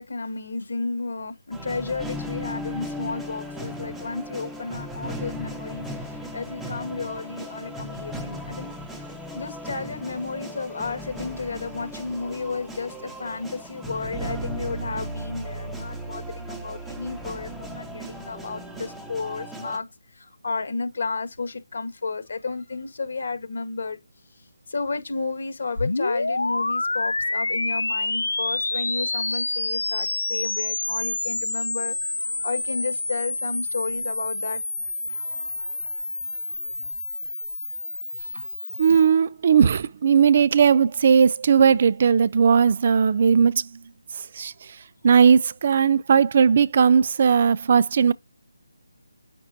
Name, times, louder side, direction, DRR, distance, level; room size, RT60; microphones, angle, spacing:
voice 1, 0.0-19.9 20.1-24.0 24.7-34.6, left 4 dB, 60° left, 1.6 m, -32 dB
sound 1, 1.5-19.8, equal, ahead, 1.0 m, -36 dB
sound 2, 25.8-39.1, left 2 dB, 85° left, 0.3 m, -28 dB
voice 2, 38.8-43.6 44.4-44.5 45.0-48.1, right 6 dB, 45° right, 0.4 m, -18 dB
8.3 x 6.0 x 2.7 m
figure-of-eight pair, 160°, 0 cm